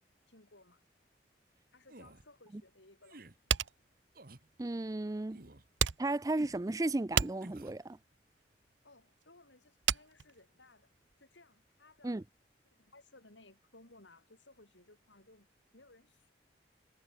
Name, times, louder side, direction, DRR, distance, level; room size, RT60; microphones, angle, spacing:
voice 1, 0.3-0.8 1.7-3.6 8.8-10.9 11.2-12.2 12.7-16.3, left 2 dB, 80° left, 6.8 m, -61 dB
sound 1, 1.9-2.3 3.0-3.4 4.1-4.5 5.3-5.7 6.4-6.6 7.4-7.8, right 2 dB, 50° right, 1.8 m, -53 dB
sound 2, 3.5-11.1, right 8 dB, 85° right, 0.9 m, -35 dB
voice 2, 4.6-5.4 6.0-8.0 12.0-12.2, right 2 dB, 20° right, 0.4 m, -34 dB
head